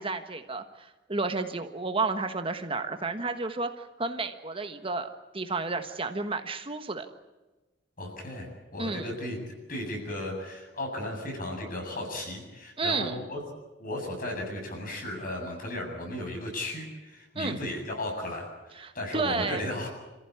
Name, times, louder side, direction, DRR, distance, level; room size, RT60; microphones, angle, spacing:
voice 1, 0.0-5.1 5.3-7.1 8.8-9.1 12.8-13.2 17.3-17.6 18.8-19.6, right 3 dB, 30° right, 7 dB, 1.3 m, -31 dB
voice 2, 8.0-13.4 13.8-19.9, left 1 dB, 50° left, 2 dB, 7.8 m, -35 dB
27.5 x 15.0 x 9.8 m, 1.1 s
head